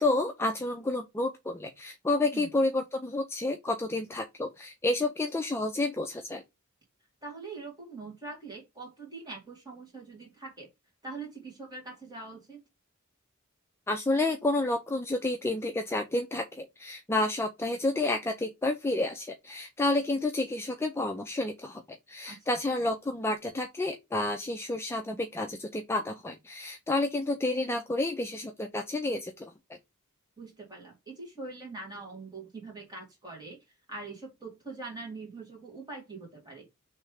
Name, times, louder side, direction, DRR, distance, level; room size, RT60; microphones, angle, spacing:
voice 1, 0.0-6.4 13.9-21.8 22.1-29.8, left 2 dB, 10° left, 0.3 m, -30 dB
voice 2, 7.2-10.7 11.0-12.6 22.3-22.5 30.4-33.6 33.9-36.7, right 3 dB, 20° right, 1.9 m, -43 dB
3.2 x 3.2 x 4.7 m
head